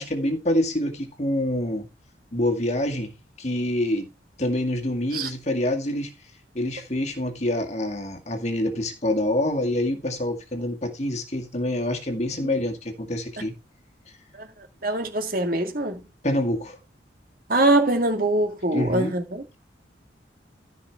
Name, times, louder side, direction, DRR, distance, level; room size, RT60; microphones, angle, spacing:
voice 1, 0.0-1.9 2.3-4.1 4.4-6.1 6.5-13.5 16.2-16.8 18.7-19.1, left 1 dB, 35° left, 2.0 m, -26 dB
voice 2, 14.8-16.0 17.5-19.4, right 2 dB, 50° right, 2.2 m, -23 dB
14.5 x 5.4 x 4.6 m
head